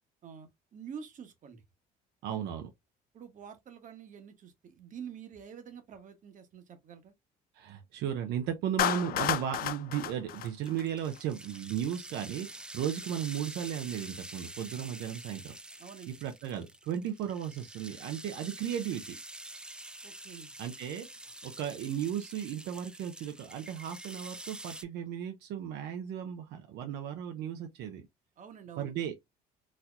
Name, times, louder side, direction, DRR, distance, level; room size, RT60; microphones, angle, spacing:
voice 1, 0.2-1.6 3.1-7.1 15.8-16.2 20.0-20.5 28.4-28.9, right 7 dB, 50° right, 1.1 m, -47 dB
voice 2, 2.2-2.7 7.5-19.2 20.6-21.1 21.4-28.0 28.8-29.1, right 9 dB, 80° right, 0.6 m, -35 dB
Clapping, 8.8-11.2, left 12 dB, 60° left, 0.4 m, -32 dB
sound 1, 10.3-24.8, right 1 dB, 5° right, 0.3 m, -47 dB
4.1 x 2.8 x 2.4 m
cardioid pair, 110°, 17 cm